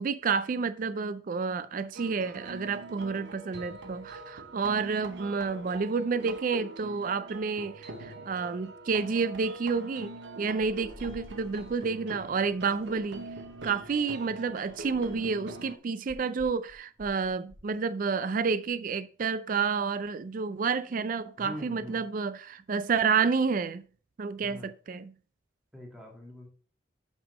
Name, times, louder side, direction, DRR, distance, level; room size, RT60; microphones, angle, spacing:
voice 1, 0.0-13.3 13.6-23.8 24.2-25.1, right 5 dB, 45° right, 0.4 m, -30 dB
sound 1, 1.9-15.8, right 3 dB, 60° right, 0.9 m, -44 dB
sound 2, 10.6-11.8 12.8-14.0 14.7-15.4 16.1-17.7, left 1 dB, 30° left, 2.5 m, -51 dB
voice 2, 21.4-22.0 24.4-24.7 25.7-26.5, equal, ahead, 2.0 m, -43 dB
5.8 x 5.5 x 5.0 m
head